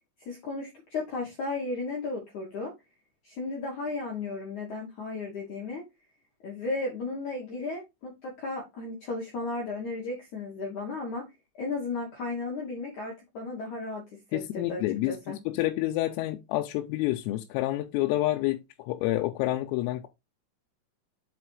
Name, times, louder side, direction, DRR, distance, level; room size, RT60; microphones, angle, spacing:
voice 1, 0.2-2.7 3.2-5.8 6.4-11.2 11.5-14.8 15.1-15.4, left 3 dB, 60° left, 2.0 m, -34 dB
voice 2, 14.3-15.2 15.5-20.1, left 16 dB, 90° left, 3.4 m, -28 dB
7.7 x 4.2 x 4.6 m
omnidirectional pair, 5.9 m